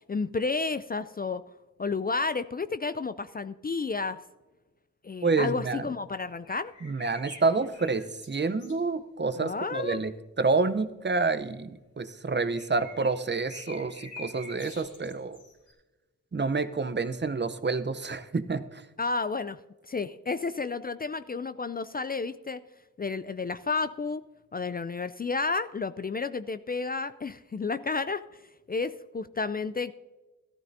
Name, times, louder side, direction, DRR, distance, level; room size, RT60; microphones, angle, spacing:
voice 1, 0.1-1.4 1.8-4.2 5.0-6.7 9.4-10.1 19.0-19.6 19.9-22.6 23.0-24.2 24.5-28.2 28.7-29.9, left 4 dB, 30° left, 13 dB, 0.4 m, -31 dB
voice 2, 5.2-5.8 6.8-10.1 10.4-15.4 16.3-18.8, right 4 dB, 35° right, 12 dB, 0.7 m, -28 dB
sound 1, 6.4-8.8 12.5-15.7, left 1 dB, 70° left, 3.1 m, -47 dB
14.0 x 12.5 x 2.7 m, 1.1 s
cardioid pair, 45°, 32 cm